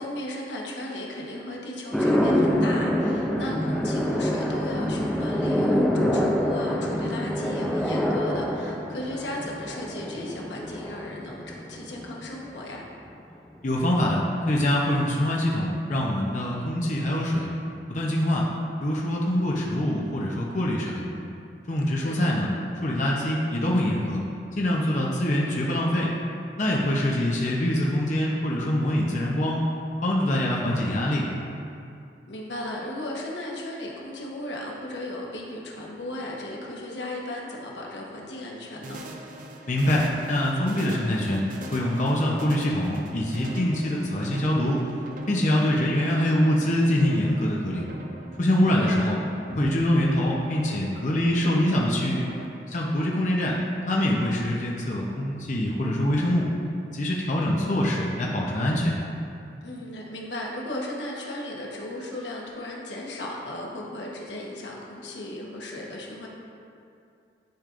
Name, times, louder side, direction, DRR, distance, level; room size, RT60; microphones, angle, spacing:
voice 1, 0.0-12.8 22.0-22.3 32.3-39.0 48.7-49.1 59.6-66.3, left 1 dB, 90° left, -2 dB, 1.1 m, -36 dB
sound 1, 1.9-12.3, equal, ahead, 0.5 m, -26 dB
voice 2, 13.6-17.5 17.9-18.5 18.8-21.0 21.7-22.5 22.8-24.2 24.5-26.1 26.6-29.6 30.0-31.3 39.7-41.4 41.7-44.8 45.3-47.9 48.4-49.2 49.5-52.2 52.7-53.6 53.8-56.5 56.9-59.0, left 1 dB, 45° left, -3 dB, 0.7 m, -24 dB
sound 2, 38.8-52.5, right 1 dB, 50° right, 0.6 m, -41 dB
10.5 x 5.2 x 2.5 m, 2.5 s
head